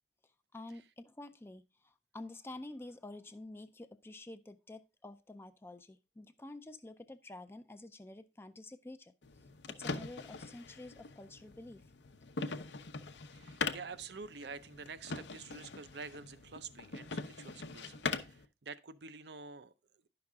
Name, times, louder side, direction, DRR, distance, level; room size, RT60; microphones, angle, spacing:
voice 1, 0.2-11.9, left 2 dB, 15° left, 0.4 m, -49 dB
sound 1, 9.2-18.5, left 4 dB, 80° left, 0.7 m, -42 dB
voice 2, 13.3-19.7, right 5 dB, 70° right, 0.6 m, -48 dB
10.5 x 5.9 x 3.6 m
head